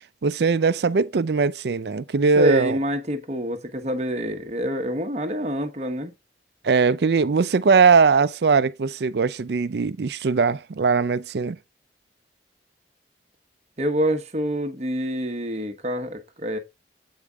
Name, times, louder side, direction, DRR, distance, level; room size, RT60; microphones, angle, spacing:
voice 1, 0.2-2.8 6.6-11.6, right 5 dB, 60° right, 0.4 m, -20 dB
voice 2, 2.4-6.1 13.8-16.6, equal, 35° right, 1.1 m, -26 dB
8.3 x 5.0 x 3.5 m
head